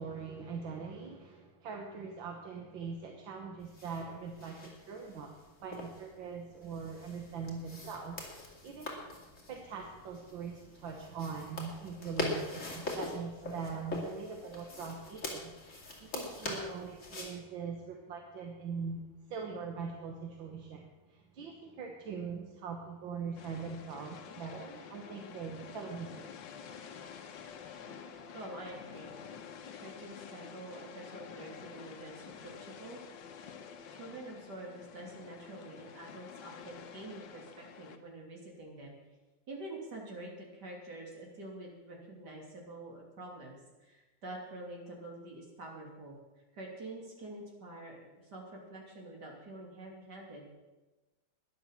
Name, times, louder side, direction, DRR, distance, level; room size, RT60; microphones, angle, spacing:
voice 1, 0.0-5.3 5.6-9.1 9.5-26.3 27.9-28.3, right 5 dB, 80° right, 2 dB, 2.0 m, -42 dB
sound 1, 3.6-17.3, left 2 dB, 40° left, 3.0 m, -43 dB
sound 2, 23.4-38.0, left 7 dB, 70° left, 1.6 m, -49 dB
voice 2, 28.3-29.2 29.8-33.0 33.9-39.0 39.5-46.2 46.5-50.5, right 2 dB, 60° right, -1 dB, 3.6 m, -47 dB
12.5 x 10.5 x 7.2 m, 1.1 s
omnidirectional pair, 2.1 m